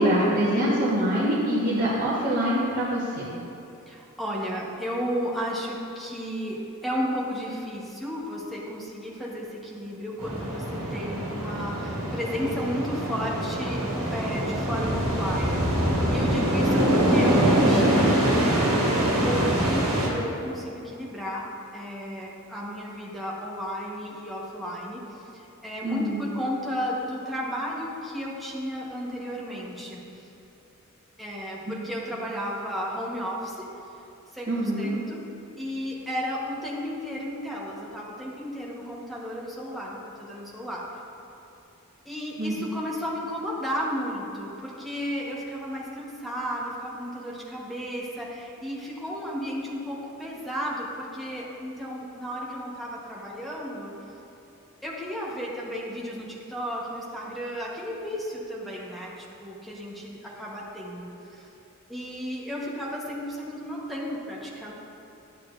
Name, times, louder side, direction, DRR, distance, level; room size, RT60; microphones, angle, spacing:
voice 1, 0.0-3.3 25.8-26.2 34.5-34.9 42.4-42.5, equal, 40° right, -10 dB, 1.2 m, -24 dB
voice 2, 3.9-13.8 14.1-18.4 18.8-21.4 21.7-30.3 31.2-33.7 34.3-35.2 35.6-40.8 42.0-54.1 54.8-61.5 61.9-64.7, equal, ahead, -5 dB, 1.2 m, -33 dB
sound 1, 10.2-20.1, right 1 dB, 70° right, 1.8 m, -24 dB
11.0 x 8.3 x 2.6 m, 2.9 s
head